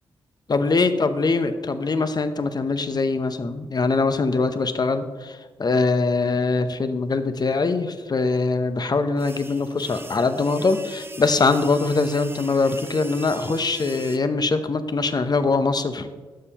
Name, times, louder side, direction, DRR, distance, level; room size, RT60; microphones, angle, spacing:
voice 1, 0.5-16.1, left 3 dB, 45° left, 10 dB, 0.7 m, -22 dB
sound 1, 9.2-14.2, right 2 dB, 25° right, 0.8 m, -40 dB
11.5 x 7.0 x 2.9 m, 1.4 s
supercardioid pair, 40°, 10 cm